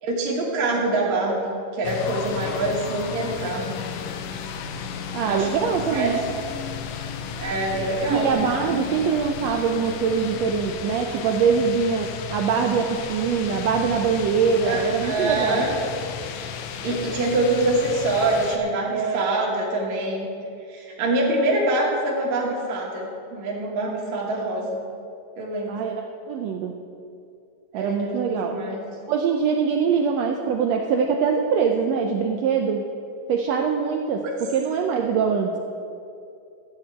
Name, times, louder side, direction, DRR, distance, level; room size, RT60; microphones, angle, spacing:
voice 1, 0.0-3.7 5.2-5.5 5.8-6.2 7.4-8.3 14.6-15.7 16.8-20.3 20.7-24.8 25.4-25.8 27.7-28.8 34.2-34.3, right 2 dB, 65° right, -3 dB, 2.6 m, -25 dB
sound 1, 1.8-18.6, left 7 dB, 85° left, 2.2 m, -34 dB
voice 2, 5.1-6.2 8.1-15.7 18.9-19.3 25.7-25.9 26.3-26.7 27.7-28.6 29.1-32.8 33.3-35.5, right 6 dB, 85° right, 3 dB, 1.5 m, -23 dB
13.5 x 4.6 x 8.6 m, 2.5 s
omnidirectional pair, 3.7 m